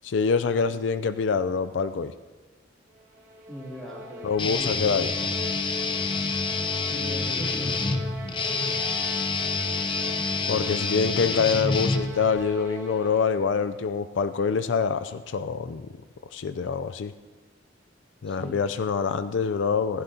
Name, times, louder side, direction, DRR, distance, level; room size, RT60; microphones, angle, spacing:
voice 1, 0.0-2.1 4.2-5.1 10.5-15.9 16.3-17.1 18.2-20.0, left 5 dB, 75° left, 11 dB, 0.4 m, -25 dB
sound 1, 3.0-13.6, left 2 dB, 40° right, 1.8 m, -40 dB
voice 2, 3.5-5.1 6.9-8.2 18.2-18.6, equal, 5° left, -4 dB, 2.6 m, -41 dB
Guitar, 4.4-12.4, left 4 dB, 25° left, 0.6 m, -27 dB
16.5 x 15.0 x 2.7 m, 1.4 s
head